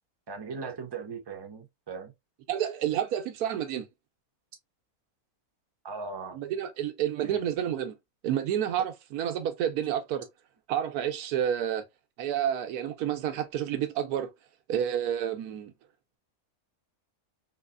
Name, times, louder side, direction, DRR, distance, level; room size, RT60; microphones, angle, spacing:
voice 1, 0.3-2.1 5.8-6.4 7.2-7.4 8.8-8.9, right 5 dB, 30° right, 0.4 m, -39 dB
voice 2, 2.5-3.9 6.3-7.9 8.2-10.3 10.7-11.8 12.2-14.3 14.7-15.7, right 10 dB, 90° right, 1.2 m, -29 dB
3.9 x 2.9 x 2.4 m
omnidirectional pair, 1.6 m